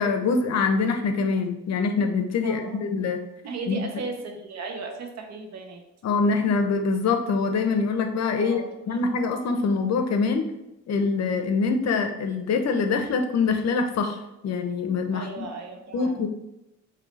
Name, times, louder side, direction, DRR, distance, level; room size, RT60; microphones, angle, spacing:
voice 1, 0.0-3.2 3.7-3.8 6.0-8.6 8.9-10.5 10.9-15.5 15.9-16.3, left 4 dB, 60° left, 6 dB, 0.7 m, -24 dB
voice 2, 2.4-2.8 3.4-5.8 8.4-8.7 15.1-16.2, right 3 dB, 60° right, 3 dB, 0.9 m, -36 dB
5.1 x 2.8 x 3.1 m, 0.90 s
cardioid pair, 90°, 30 cm